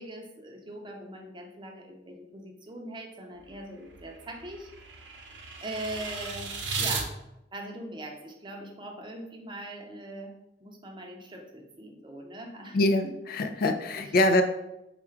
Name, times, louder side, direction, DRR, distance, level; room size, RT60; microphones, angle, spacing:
voice 1, 0.0-5.1 5.6-7.2 7.5-10.4 10.6-12.8 13.0-13.1 13.4-14.2, right 1 dB, 25° right, 2 dB, 0.6 m, -41 dB
sound 1, 3.4-7.0, right 4 dB, 85° right, 0.7 m, -36 dB
voice 2, 12.7-14.4, left 1 dB, 55° left, 7 dB, 0.4 m, -24 dB
3.6 x 2.4 x 4.4 m, 0.89 s
head